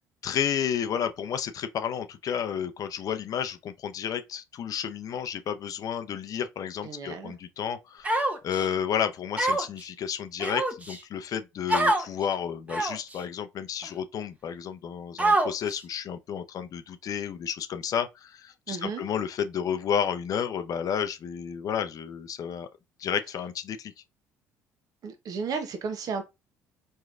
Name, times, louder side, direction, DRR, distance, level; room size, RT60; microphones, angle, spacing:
voice 1, 0.2-22.7 23.0-23.9, left 8 dB, 55° left, 0.6 m, -31 dB
voice 2, 6.8-7.3 18.7-19.0 25.0-26.2, right 5 dB, 55° right, 1.0 m, -33 dB
Human voice, 8.0-8.7 9.4-9.8 10.4-11.0 11.7-12.1 12.7-13.1 13.8-13.9 15.2-15.8, right 1 dB, 20° right, 1.1 m, -25 dB
4.5 x 3.2 x 2.5 m
hypercardioid pair, 65°, 7 cm